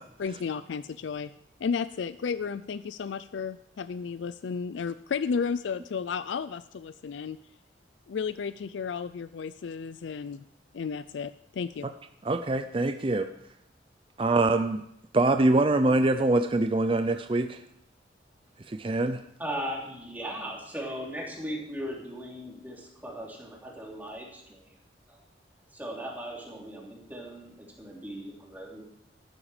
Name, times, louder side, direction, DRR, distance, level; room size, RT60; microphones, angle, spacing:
voice 1, 0.2-1.3 1.6-7.4 8.1-10.4 10.7-11.9, left 6 dB, 80° left, 14 dB, 0.4 m, -33 dB
voice 2, 12.2-13.3 14.2-14.8 15.1-17.6 18.7-19.2, right 2 dB, 30° right, 9 dB, 0.5 m, -24 dB
voice 3, 19.4-24.6 25.1-25.2 25.7-27.5 27.8-28.8, equal, 10° right, -3 dB, 3.4 m, -38 dB
14.0 x 12.0 x 5.0 m, 0.75 s
head